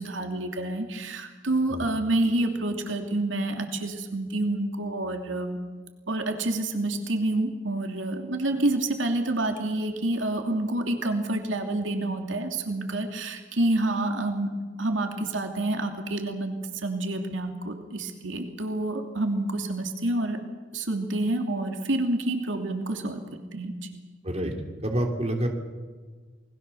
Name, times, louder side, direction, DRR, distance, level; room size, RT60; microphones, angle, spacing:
voice 1, 0.0-5.6 6.1-14.5 14.8-20.4 20.7-23.2 23.5-23.7, right 2 dB, 80° right, 4 dB, 2.7 m, -28 dB
voice 2, 24.8-25.5, right 1 dB, 35° right, 3 dB, 3.3 m, -27 dB
28.5 x 21.5 x 7.0 m, 1.4 s
head